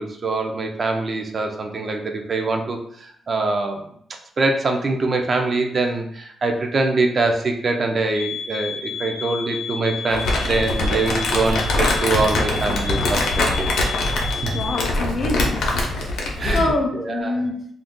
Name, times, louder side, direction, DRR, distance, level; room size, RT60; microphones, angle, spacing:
voice 1, 0.0-3.8 4.4-13.8 14.4-14.5 16.4-17.4, right 3 dB, 30° right, 4 dB, 0.3 m, -24 dB
sound 1, 8.1-14.9, left 6 dB, 85° right, 1.0 m, -32 dB
Crumpling crinkling, 10.1-16.7, left 2 dB, 85° left, 0.6 m, -23 dB
voice 2, 14.4-15.7 16.5-17.6, left 2 dB, 35° left, 2 dB, 0.4 m, -25 dB
2.4 x 2.2 x 3.6 m, 0.67 s
wide cardioid pair, 175°, 0 cm